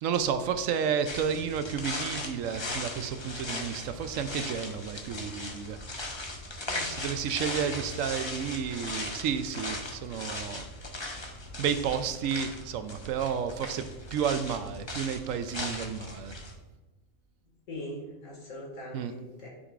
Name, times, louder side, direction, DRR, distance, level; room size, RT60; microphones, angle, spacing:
voice 1, 0.0-5.8 6.9-10.6 11.6-16.3 18.9-19.1, right 7 dB, 80° right, 10 dB, 1.0 m, -31 dB
sound 1, 1.1-16.6, left 2 dB, 25° left, 0.7 m, -38 dB
voice 2, 6.6-7.0 7.6-7.7 17.7-19.5, left 1 dB, 80° left, -2 dB, 2.3 m, -41 dB
9.9 x 5.2 x 2.5 m, 1.1 s
omnidirectional pair, 1.3 m